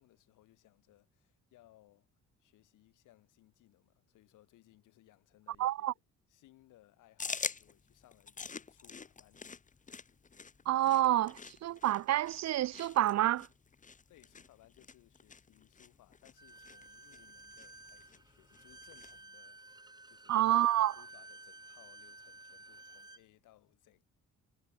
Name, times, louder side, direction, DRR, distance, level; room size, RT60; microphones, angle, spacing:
voice 1, 0.0-2.1 2.4-6.0 6.3-9.8 14.1-20.7 20.9-24.0, left 16 dB, 90° left, 5.0 m, -65 dB
voice 2, 5.6-5.9 10.7-13.5 20.3-20.9, right 13 dB, 60° right, 0.6 m, -28 dB
sound 1, 7.2-19.2, left 5 dB, 25° left, 1.0 m, -47 dB
Bowed string instrument, 16.4-23.2, right 2 dB, 15° right, 2.6 m, -54 dB
cardioid pair, 90°, 30 cm